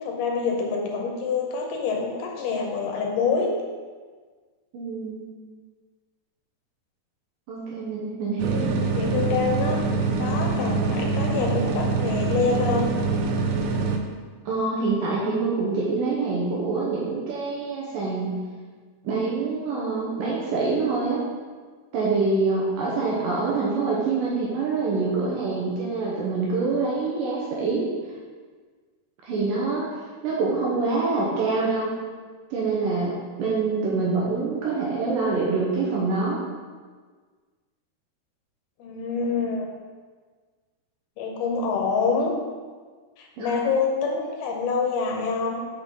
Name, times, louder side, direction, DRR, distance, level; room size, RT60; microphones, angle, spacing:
voice 1, 0.0-3.5 8.5-12.9 22.9-23.4 38.8-39.7 41.2-42.3 43.2-45.7, left 5 dB, 75° left, 1 dB, 2.6 m, -26 dB
voice 2, 4.7-5.2 7.5-8.7 14.5-18.4 19.0-21.2 21.9-27.9 29.2-29.8 30.2-32.0 32.5-36.4 43.4-43.5, right 4 dB, 70° right, -4 dB, 2.3 m, -25 dB
sound 1, 8.4-14.0, right 3 dB, 90° right, 2.1 m, -24 dB
8.0 x 5.7 x 3.8 m, 1.5 s
omnidirectional pair, 4.7 m